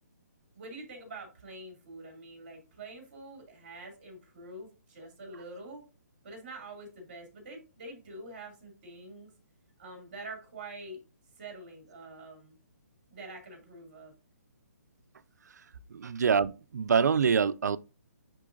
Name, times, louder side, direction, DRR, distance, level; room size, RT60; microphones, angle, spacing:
voice 1, 0.5-5.8 6.2-9.3 9.8-11.0 11.4-12.6 13.1-14.1, right 2 dB, 35° right, 2.5 m, -46 dB
voice 2, 15.9-17.8, right 6 dB, 75° right, 0.4 m, -25 dB
9.9 x 3.8 x 2.5 m
hypercardioid pair, 175°, 9 cm